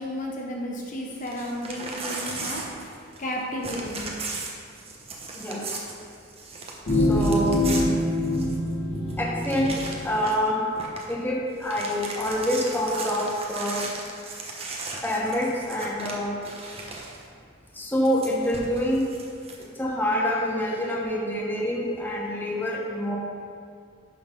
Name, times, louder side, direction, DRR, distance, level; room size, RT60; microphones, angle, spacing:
voice 1, 0.0-2.9 3.2-4.1, left 1 dB, 40° left, -1 dB, 0.9 m, -33 dB
Crumpling crinkling / Tearing, 1.2-3.3 3.6-8.7 9.1-9.2 9.4-10.5 10.8-11.1 11.5-17.2 18.0-19.6, right 3 dB, 30° right, 0.9 m, -37 dB
sound 1, 6.9-9.7, left 1 dB, 90° left, 2.0 m, -24 dB
voice 2, 6.9-7.6 9.2-10.7 11.1-13.9 15.0-16.3 17.7-19.1 19.6-23.2, equal, 10° left, -3 dB, 1.0 m, -26 dB
11.0 x 3.9 x 5.3 m, 2.3 s
head